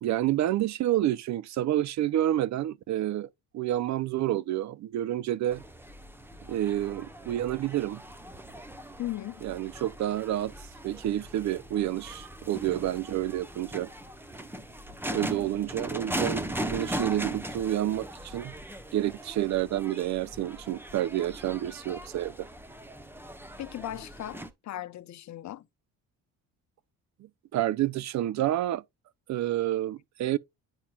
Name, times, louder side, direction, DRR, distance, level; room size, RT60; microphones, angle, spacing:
voice 1, 0.0-3.3 3.5-5.6 6.5-8.0 9.4-10.5 10.8-13.9 15.1-18.5 18.9-22.5 27.2-28.8 29.3-30.4, right 13 dB, 50° right, 0.5 m, -29 dB
sound 1, 5.5-24.5, right 1 dB, 5° right, 0.9 m, -39 dB
voice 2, 9.0-9.4 23.6-25.7, left 13 dB, 50° left, 0.7 m, -37 dB
9.9 x 4.1 x 2.3 m
supercardioid pair, 80°, 37 cm